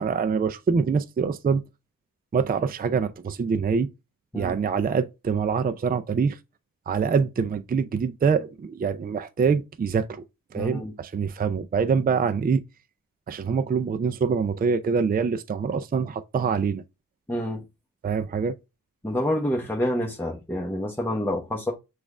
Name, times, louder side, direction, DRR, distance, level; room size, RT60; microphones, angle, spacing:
voice 1, 0.0-1.6 2.3-3.9 4.4-6.4 6.9-10.2 10.5-12.6 13.3-16.8 18.0-18.5, right 5 dB, 25° right, 0.4 m, -25 dB
voice 2, 10.5-10.9 17.3-17.6 19.0-21.7, left 1 dB, 5° left, 1.0 m, -28 dB
6.1 x 2.5 x 3.4 m
cardioid pair, 75°, 35 cm